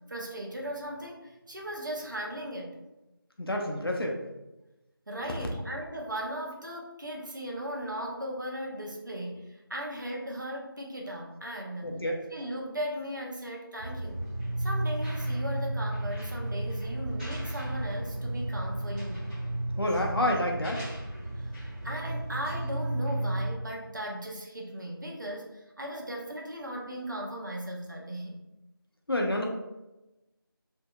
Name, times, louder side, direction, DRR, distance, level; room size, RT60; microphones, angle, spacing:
voice 1, 0.1-2.7 5.1-11.9 12.3-14.3 14.6-19.2 21.3-28.4, equal, 55° right, -1 dB, 0.6 m, -37 dB
voice 2, 3.4-4.2 11.8-12.2 19.8-20.9 29.1-29.4, left 1 dB, 80° left, 0 dB, 0.6 m, -28 dB
sound 1, 13.8-23.5, right 1 dB, 25° right, 1.4 m, -33 dB
2.7 x 2.7 x 2.2 m, 1.0 s
figure-of-eight pair, 170°, 12 cm